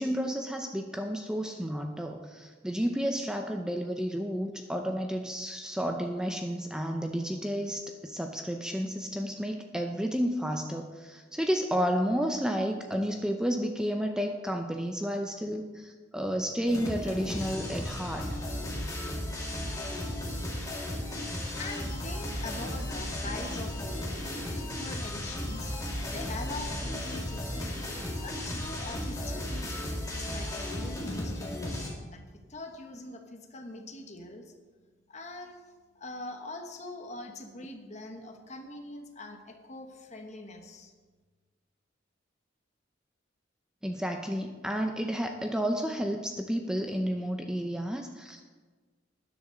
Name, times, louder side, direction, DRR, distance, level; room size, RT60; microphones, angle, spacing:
voice 1, 0.0-18.3 43.8-48.4, equal, 5° right, 4 dB, 0.5 m, -31 dB
sound 1, 16.7-31.9, left 1 dB, 20° left, 2.1 m, -35 dB
voice 2, 21.5-27.7 28.2-34.5 35.1-35.6 35.9-40.9, left 2 dB, 35° left, 5 dB, 1.2 m, -43 dB
13.0 x 10.5 x 3.9 m, 1.4 s
head